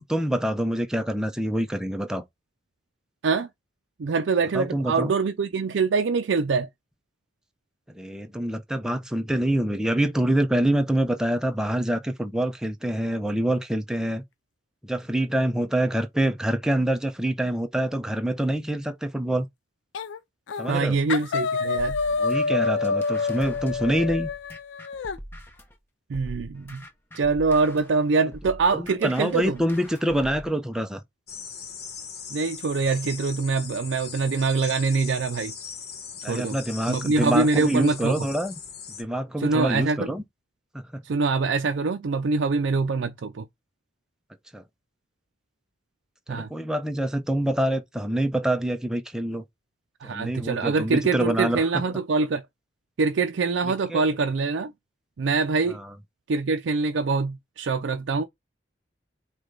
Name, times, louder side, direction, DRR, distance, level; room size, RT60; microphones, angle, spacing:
voice 1, 0.0-2.2 4.5-5.1 7.9-14.2 14.8-19.5 20.6-21.0 22.2-24.3 28.7-31.0 36.2-38.6 39.0-40.2 40.9-41.0 44.5-44.6 46.3-49.4 50.0-51.6 53.9-54.0 55.7-55.9, right 1 dB, 5° right, 0.5 m, -26 dB
voice 2, 4.0-6.7 20.7-22.0 26.1-26.8 27.1-29.6 32.3-35.5 36.3-36.6 36.9-38.1 39.4-40.1 41.0-43.5 46.3-46.5 50.0-52.4 53.0-54.7 55.2-55.8 56.3-58.2, right 4 dB, 75° right, 0.4 m, -24 dB
sound 1, 19.9-20.2 20.5-20.8 21.1-25.2, left 4 dB, 80° left, 0.4 m, -27 dB
sound 2, 21.8-25.7 26.1-30.5, equal, 10° left, 0.9 m, -43 dB
sound 3, 31.3-39.0, left 6 dB, 55° left, 1.0 m, -39 dB
4.8 x 2.3 x 3.8 m
head